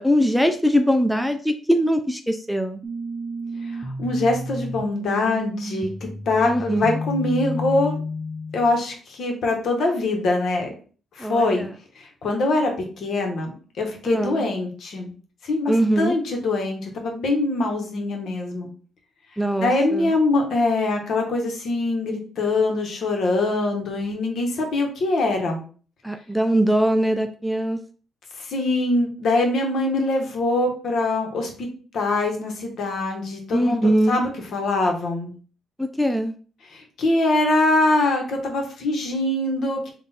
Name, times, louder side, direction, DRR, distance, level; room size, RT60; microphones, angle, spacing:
voice 1, 0.0-2.8 6.4-7.0 11.2-11.7 14.1-14.4 15.7-16.1 19.4-20.1 26.0-27.8 33.5-34.2 35.8-36.3, equal, ahead, 6 dB, 0.4 m, -21 dB
sound 1, 2.8-8.8, left 1 dB, 20° right, 0.8 m, -31 dB
voice 2, 3.7-5.9 6.3-8.0 8.5-10.7 11.2-11.7 12.0-12.7 13.0-13.5 13.8-15.1 15.4-18.7 19.6-25.6 28.5-31.7 31.9-35.3 36.7-39.9, left 2 dB, 65° left, 2 dB, 1.2 m, -23 dB
3.6 x 2.5 x 4.2 m, 0.40 s
cardioid pair, 90°, 0 cm